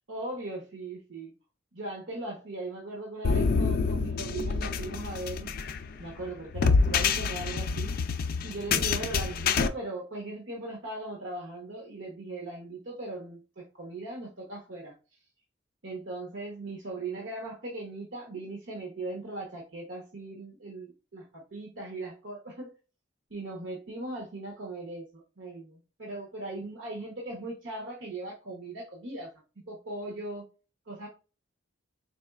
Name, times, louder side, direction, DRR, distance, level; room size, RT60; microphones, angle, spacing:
voice 1, 0.1-1.3 1.7-5.5 6.0-15.0 15.8-22.7 23.3-29.3 29.7-30.5 30.9-31.1, right 2 dB, 75° right, -1 dB, 0.9 m, -39 dB
sound 1, 3.2-9.7, left 4 dB, 50° left, 0.4 m, -27 dB
4.2 x 3.1 x 2.3 m, 0.33 s
head